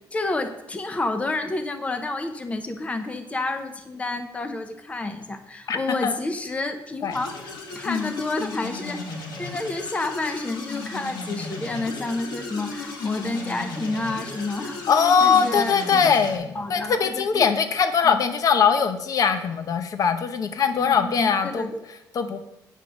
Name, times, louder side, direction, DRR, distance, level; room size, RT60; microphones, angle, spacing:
voice 1, 0.1-7.3 7.7-9.0 9.4-14.8 15.2-16.2 16.5-17.5 18.0-18.2 20.7-21.8, left 2 dB, 20° left, 8 dB, 0.7 m, -30 dB
voice 2, 5.7-6.1 7.0-7.1 7.8-8.1 14.9-21.7 22.1-22.4, left 6 dB, 50° left, 9 dB, 0.8 m, -21 dB
sound 1, 7.1-16.3, left 3 dB, 80° left, 1.9 m, -35 dB
9.2 x 5.9 x 6.1 m, 0.88 s
cardioid pair, 140°, 7 cm